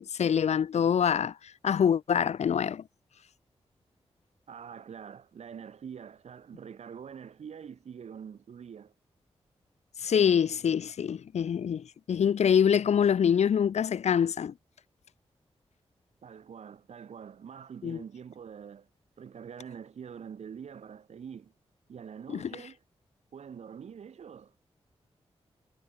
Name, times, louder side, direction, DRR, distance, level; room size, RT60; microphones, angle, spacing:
voice 1, 0.0-1.3 1.6-2.8 10.0-14.5 17.8-18.0 22.3-22.5, left 8 dB, 90° left, 3.5 m, -25 dB
voice 2, 4.5-8.9 16.2-18.9 19.2-21.5 21.9-22.8 23.3-24.5, right 7 dB, 80° right, 7.1 m, -45 dB
cardioid pair, 85°, 11 cm